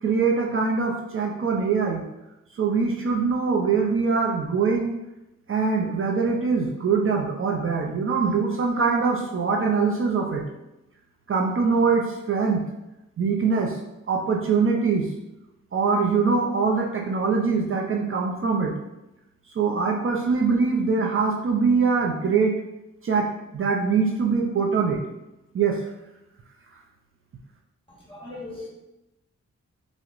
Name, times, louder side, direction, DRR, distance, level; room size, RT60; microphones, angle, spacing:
voice 1, 0.0-2.0 2.5-4.9 5.5-10.4 11.3-12.6 13.2-13.7 14.1-15.1 15.7-18.7 19.6-22.5 23.0-23.3 23.5-25.0 25.5-25.8, right 5 dB, 45° right, 0 dB, 0.4 m, -23 dB
voice 2, 27.9-28.7, left 2 dB, 20° left, -5 dB, 1.1 m, -39 dB
4.5 x 2.0 x 2.4 m, 0.92 s
wide cardioid pair, 100°, 29 cm